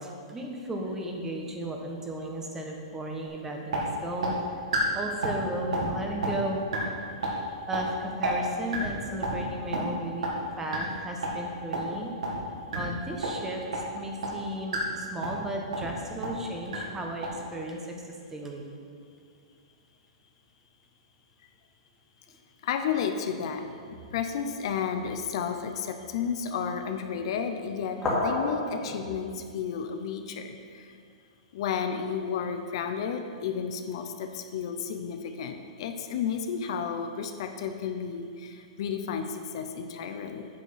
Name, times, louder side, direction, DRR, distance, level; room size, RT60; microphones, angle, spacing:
voice 1, 0.0-4.3 4.9-6.7 7.7-10.3 10.6-12.1 12.7-17.8 18.3-18.6, right 1 dB, 10° right, 1 dB, 1.2 m, -35 dB
sound 1, 3.2-3.3 3.7-3.8 4.2-4.3 4.7-4.8 5.2-5.4 5.7-5.9 6.2-6.3 6.7-6.8 7.2-7.3 7.7-7.8 8.2-8.3 8.7-8.9 9.2-9.3 9.7-9.8 10.2-10.3 10.7-10.8 11.2-11.3 11.7-11.8 12.2-12.4 12.7-12.8 13.2-13.3 13.7-13.8 14.2-14.3 14.7-14.8 15.2-15.4 15.7-15.9 16.2-16.3 16.7-16.8 17.2-17.3, right 5 dB, 80° right, 2.5 m, -29 dB
voice 2, 22.6-23.6 24.1-30.9 31.5-40.5, left 7 dB, 60° left, 7 dB, 0.8 m, -32 dB
sound 2, 23.5-24.3 24.9-25.1 26.0-26.2 27.8-29.2, left 2 dB, 15° left, 2.3 m, -32 dB
8.7 x 7.4 x 5.8 m, 2.3 s
hypercardioid pair, 145°, 3 cm